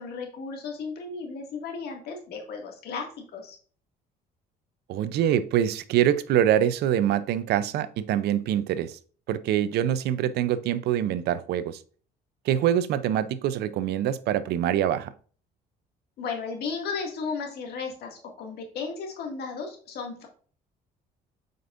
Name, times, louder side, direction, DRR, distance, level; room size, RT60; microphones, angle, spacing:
voice 1, 0.0-3.6 16.2-20.3, left 5 dB, 70° left, 2.1 m, -35 dB
voice 2, 4.9-9.0 9.3-11.8 12.5-15.1, right 10 dB, 75° right, 0.6 m, -24 dB
7.8 x 5.2 x 2.5 m
cardioid pair, 110°, 17 cm